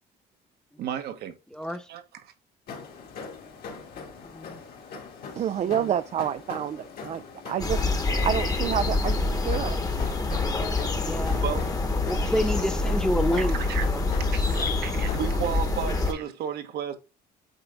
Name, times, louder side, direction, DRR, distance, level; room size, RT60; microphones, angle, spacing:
voice 1, 0.8-1.4 1.9-2.3 11.4-11.6 13.4-13.9 14.2-17.0, right 9 dB, 70° right, 1.1 m, -33 dB
voice 2, 1.5-1.9 4.2-4.6 5.7-5.8 11.0-11.4 12.1-13.6 13.9-14.0 14.9-15.1, equal, 5° left, 0.6 m, -29 dB
sound 1, 2.7-15.4, left 5 dB, 60° left, 2.1 m, -42 dB
voice 3, 5.4-7.8 8.2-9.8, right 10 dB, 40° right, 0.4 m, -28 dB
sound 2, 7.6-16.1, left 3 dB, 20° left, 1.1 m, -26 dB
8.1 x 3.9 x 3.4 m
cardioid pair, 110°, 17 cm